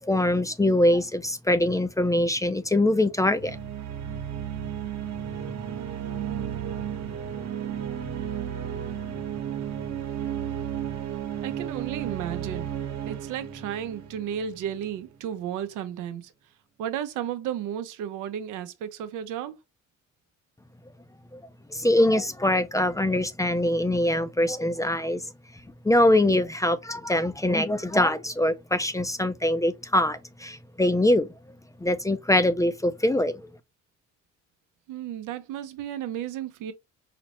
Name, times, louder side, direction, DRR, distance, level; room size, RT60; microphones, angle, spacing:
voice 1, 0.0-3.6 21.3-21.4 21.7-25.2 25.8-31.3 31.8-33.5, left 1 dB, 10° left, 0.4 m, -23 dB
sound 1, 3.3-14.9, right 9 dB, 60° right, 1.0 m, -33 dB
voice 2, 11.4-12.7 13.1-16.3 16.8-19.6 34.9-36.7, right 10 dB, 90° right, 0.6 m, -33 dB
5.0 x 2.0 x 2.9 m
cardioid pair, 90°, 30 cm